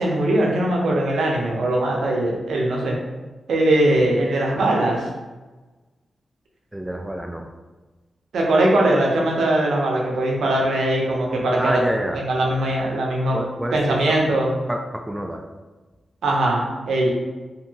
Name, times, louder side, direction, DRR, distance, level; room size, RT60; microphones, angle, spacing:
voice 1, 0.0-3.0 3.5-5.1 8.3-11.8 12.3-13.4 13.7-14.5 16.2-17.1, right 1 dB, 90° right, -1 dB, 0.5 m, -20 dB
voice 2, 6.7-7.4 11.6-12.2 13.3-14.2 14.7-15.4, right 1 dB, 15° right, 2 dB, 0.3 m, -28 dB
2.7 x 2.6 x 2.7 m, 1.2 s
cardioid pair, 55°, 0 cm